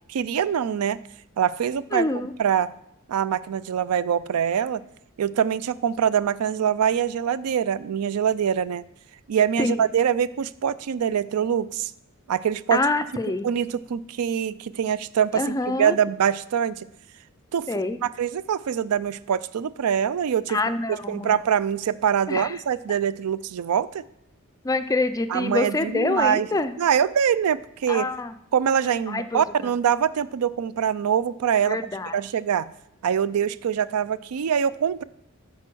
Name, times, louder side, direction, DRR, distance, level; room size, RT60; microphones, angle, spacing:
voice 1, 0.1-1.0 1.4-2.1 2.4-2.7 3.1-4.8 5.2-8.8 9.3-11.9 12.3-12.8 13.4-16.8 17.5-17.7 18.0-20.6 20.9-24.0 25.3-26.5 26.8-28.1 28.5-31.8 32.1-32.7 33.0-35.0, right 8 dB, 85° right, 17 dB, 0.4 m, -24 dB
voice 2, 1.9-2.3 9.6-9.8 12.7-13.5 15.3-16.0 17.7-18.0 20.5-21.4 22.3-22.6 24.6-26.7 27.9-28.3 29.1-29.7 31.6-32.2, left 2 dB, 15° left, 11 dB, 0.3 m, -26 dB
9.0 x 4.3 x 6.1 m, 0.79 s
head